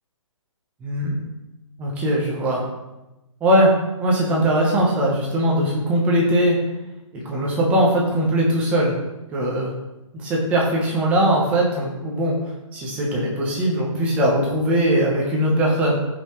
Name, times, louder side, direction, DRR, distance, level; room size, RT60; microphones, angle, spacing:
voice 1, 0.8-1.2 1.8-2.7 3.4-3.7 4.0-6.6 7.1-8.9 9.3-9.7 10.1-12.4 12.7-16.0, right 1 dB, 5° right, -3 dB, 0.9 m, -20 dB
15.0 x 5.6 x 3.1 m, 0.98 s
hypercardioid pair, 170°, 17 cm